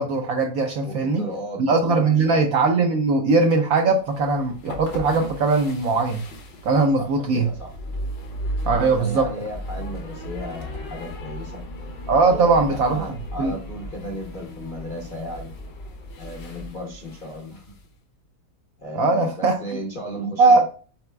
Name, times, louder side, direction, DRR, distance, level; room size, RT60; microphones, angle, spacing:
voice 1, 0.0-1.2 1.6-6.2 6.6-7.5 8.7-9.3 12.1-13.5 18.9-19.5 20.2-20.6, right 3 dB, 70° right, 4 dB, 0.8 m, -20 dB
voice 2, 0.8-2.4 7.0-7.7 8.7-11.6 12.3-15.5 16.2-17.7 18.8-20.6, equal, 50° left, -2 dB, 0.6 m, -35 dB
sound 1, 4.0-17.9, equal, 75° left, 1.5 m, -36 dB
5.8 x 3.9 x 2.2 m, 0.39 s
omnidirectional pair, 2.0 m